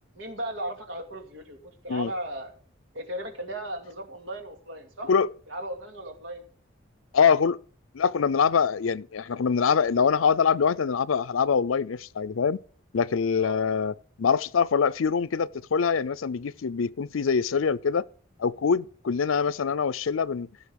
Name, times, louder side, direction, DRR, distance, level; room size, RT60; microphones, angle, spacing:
voice 1, 0.1-1.6 1.8-2.5 2.9-5.1 5.5-6.4 13.4-13.6, right 1 dB, 70° right, 2.5 m, -36 dB
voice 2, 7.1-7.6 7.9-12.6 12.9-18.0 18.4-20.5, left 6 dB, 85° left, 0.5 m, -24 dB
16.5 x 6.9 x 5.2 m
head